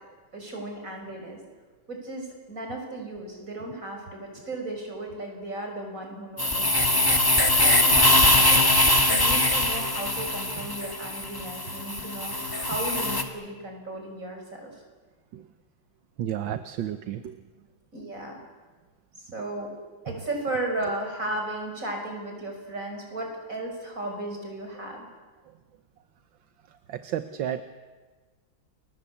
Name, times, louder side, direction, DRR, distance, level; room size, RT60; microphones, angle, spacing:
voice 1, 0.3-1.4 1.9-7.1 7.5-8.6 9.1-14.8 17.9-18.4 19.2-19.7 20.0-25.1, right 2 dB, 40° right, 2 dB, 6.4 m, -35 dB
sound 1, 6.4-13.2, left 1 dB, 10° left, 1.9 m, -22 dB
voice 2, 16.2-17.4 26.9-27.6, right 10 dB, 75° right, 10 dB, 1.7 m, -31 dB
29.5 x 22.0 x 8.5 m, 1.4 s
omnidirectional pair, 2.1 m